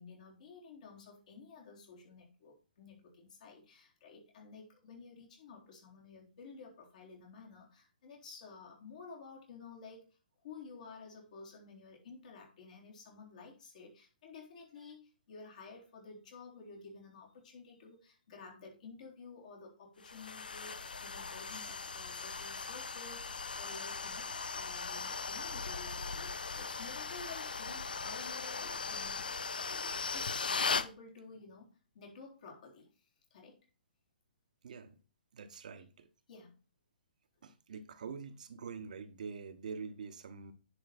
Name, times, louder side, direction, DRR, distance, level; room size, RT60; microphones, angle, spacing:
voice 1, 0.0-10.0 10.4-32.9 33.3-33.6 36.3-36.5, left 4 dB, 50° left, 3.9 m, -52 dB
sound 1, 20.0-30.9, left 4 dB, 75° left, 0.6 m, -38 dB
voice 2, 34.6-35.0 35.3-36.1 37.4-40.5, right 5 dB, 55° right, 1.2 m, -45 dB
10.0 x 5.1 x 4.2 m
figure-of-eight pair, 130°, 5 cm